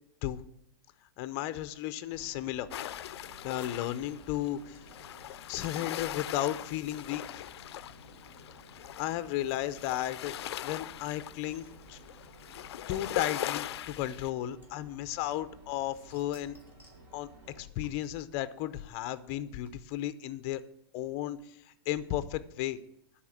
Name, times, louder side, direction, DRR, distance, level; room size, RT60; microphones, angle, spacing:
voice 1, 1.2-2.7 3.4-4.8 5.5-7.4 9.0-10.3 10.6-12.0 12.9-16.6 17.1-17.3 17.6-20.6 20.9-21.4 21.9-22.8, left 13 dB, 35° left, 14 dB, 0.6 m, -34 dB
sound 1, 2.1-17.7, right 2 dB, 40° right, 3.1 m, -55 dB
sound 2, 2.7-14.3, left 12 dB, 85° left, 0.4 m, -41 dB
sound 3, 3.6-6.7 7.3-7.4 7.7-7.8 8.8-9.0 9.5-9.6 9.8-9.9 10.1-10.2 10.6-12.3 13.2-13.3 14.6-15.6 15.9-17.1 17.8-20.1, left 1 dB, 15° right, 2.6 m, -61 dB
10.5 x 4.2 x 7.3 m, 0.78 s
supercardioid pair, 155°, 13 cm